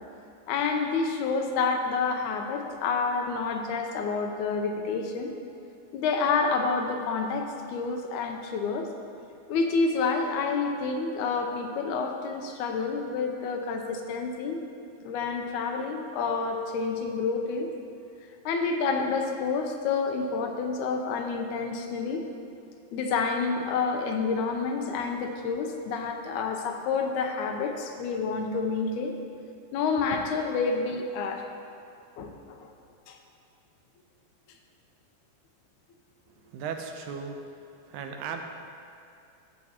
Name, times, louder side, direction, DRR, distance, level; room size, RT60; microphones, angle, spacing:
voice 1, 0.5-5.3 5.9-8.9 9.5-14.6 15.0-17.7 18.5-22.3 22.9-29.1 29.7-31.4 32.2-32.7 33.1-33.2, left 4 dB, 85° left, 4 dB, 2.1 m, -28 dB
voice 2, 36.3-38.4, right 6 dB, 85° right, 4 dB, 2.1 m, -37 dB
14.0 x 6.6 x 2.9 m, 2.6 s
omnidirectional pair, 3.4 m